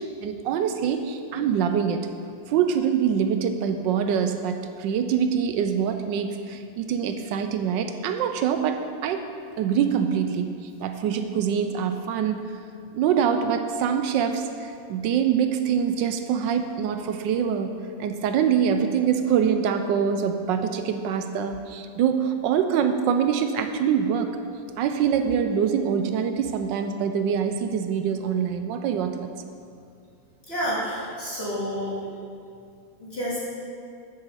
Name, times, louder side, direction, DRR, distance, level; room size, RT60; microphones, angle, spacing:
voice 1, 0.2-2.1 2.5-9.3 9.6-10.5 10.8-12.5 12.9-17.7 18.0-24.4 24.8-29.3, right 7 dB, 80° right, 7 dB, 1.2 m, -24 dB
voice 2, 30.4-32.1 33.0-33.4, equal, 30° left, -9 dB, 2.5 m, -29 dB
7.4 x 6.5 x 6.8 m, 2.4 s
omnidirectional pair, 2.0 m